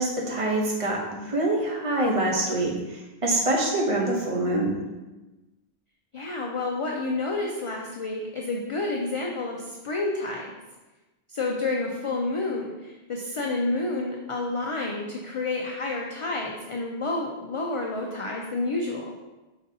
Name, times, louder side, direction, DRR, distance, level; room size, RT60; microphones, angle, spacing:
voice 1, 0.0-4.8, right 1 dB, 35° right, -1 dB, 0.8 m, -25 dB
voice 2, 6.1-10.5 11.3-19.2, left 2 dB, 50° left, -1 dB, 0.4 m, -29 dB
5.0 x 3.9 x 2.7 m, 1.1 s
omnidirectional pair, 1.1 m